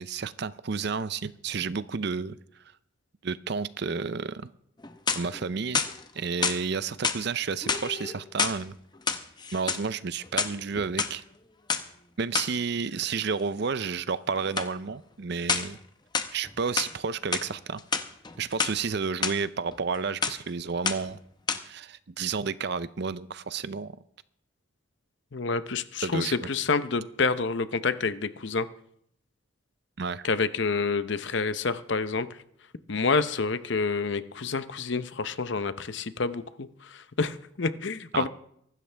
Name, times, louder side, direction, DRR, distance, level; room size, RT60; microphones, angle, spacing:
voice 1, 0.0-2.4 3.2-4.5 5.1-5.9 6.1-8.8 9.5-11.2 12.2-15.8 16.3-17.8 18.4-21.2 21.6-23.9 26.0-26.5 30.0-30.3 38.1-38.3, right 5 dB, 55° right, 16 dB, 0.5 m, -31 dB
sound 1, 4.8-5.4 5.7-6.6 7.0-7.3 7.6-8.6 9.0-9.9 10.2-11.1 11.7-11.8 12.3-12.6 14.6-14.7 15.5-15.8 16.1-16.9 17.3-17.5 17.8-18.7 19.2-19.3 19.7-20.0 20.2-20.5 20.9-21.2 21.5-21.6, left 5 dB, 20° left, 0.8 m, -28 dB
voice 2, 25.3-28.7 30.2-32.3 32.9-38.3, left 4 dB, 60° left, 13 dB, 0.7 m, -28 dB
23.5 x 12.5 x 3.4 m, 0.71 s
head